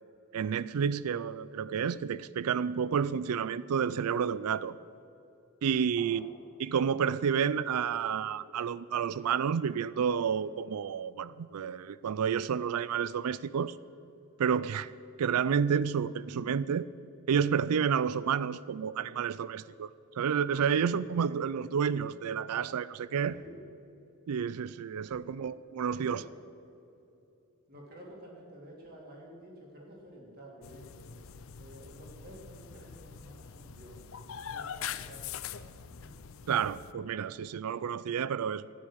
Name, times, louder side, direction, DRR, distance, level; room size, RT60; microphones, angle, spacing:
voice 1, 0.3-4.8 5.6-6.3 6.6-13.8 14.4-14.9 15.2-16.9 17.3-19.9 20.1-23.3 24.3-26.2 36.5-38.7, right 7 dB, 85° right, 0.4 m, -30 dB
voice 2, 20.5-21.0 21.3-21.4 23.1-23.7 25.1-25.5 25.9-26.2 27.7-31.1 31.5-34.1 34.5-35.6 36.0-36.1, equal, 40° right, 3.4 m, -51 dB
sound 1, 30.6-36.9, left 8 dB, 65° left, 0.5 m, -43 dB
13.5 x 9.6 x 8.7 m
head